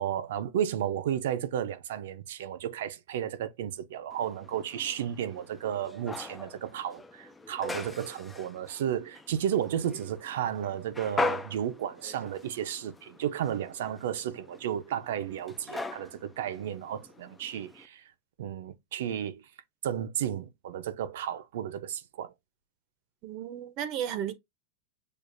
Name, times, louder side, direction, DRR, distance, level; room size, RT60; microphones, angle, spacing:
voice 1, 0.0-18.0 18.4-19.4 19.8-22.3, right 10 dB, 75° right, 0.7 m, -33 dB
sound 1, 4.1-17.9, left 2 dB, 10° left, 0.4 m, -40 dB
voice 2, 23.2-24.3, right 10 dB, 40° right, 0.7 m, -34 dB
6.5 x 2.4 x 2.6 m
supercardioid pair, 155°, 0 cm